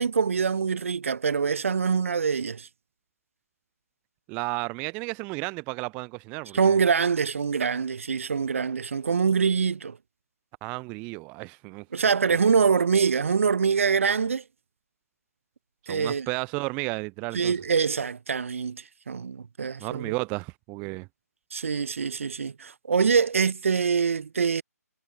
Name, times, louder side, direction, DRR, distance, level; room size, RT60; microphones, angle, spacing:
voice 1, 0.0-2.7 6.5-10.0 11.9-14.4 15.9-16.3 17.3-20.1 21.5-24.6, right 6 dB, 50° right, 0.8 m, -24 dB
voice 2, 4.3-6.8 10.6-11.9 12.3-12.4 15.8-17.5 19.8-21.1, right 28 dB, 15° right, 0.5 m, -33 dB
figure-of-eight pair, 140°, 9 cm